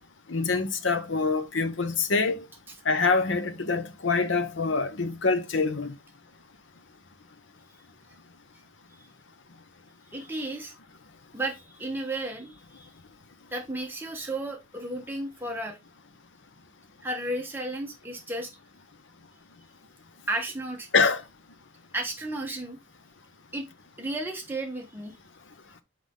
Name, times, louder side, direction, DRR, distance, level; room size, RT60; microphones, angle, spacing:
voice 1, 0.3-2.4 2.8-5.9 20.9-21.2, left 4 dB, 75° left, 0.9 m, -25 dB
voice 2, 10.1-10.7 11.3-12.9 13.5-15.8 17.0-18.5 20.3-20.9 21.9-22.8 23.5-23.7 24.0-25.2, right 1 dB, 10° right, 1.2 m, -33 dB
5.5 x 4.9 x 3.7 m
head